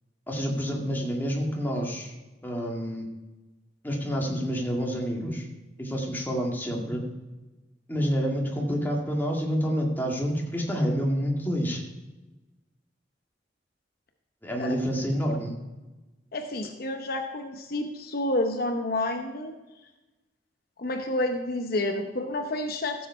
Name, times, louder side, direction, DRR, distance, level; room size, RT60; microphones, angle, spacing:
voice 1, 0.3-2.1 2.4-3.1 3.8-5.5 5.8-7.0 7.9-11.8 14.4-15.6, equal, 10° left, -1 dB, 1.9 m, -28 dB
voice 2, 16.3-19.5 20.8-23.1, left 1 dB, 55° left, 5 dB, 0.8 m, -29 dB
14.0 x 7.2 x 4.8 m, 1.1 s
head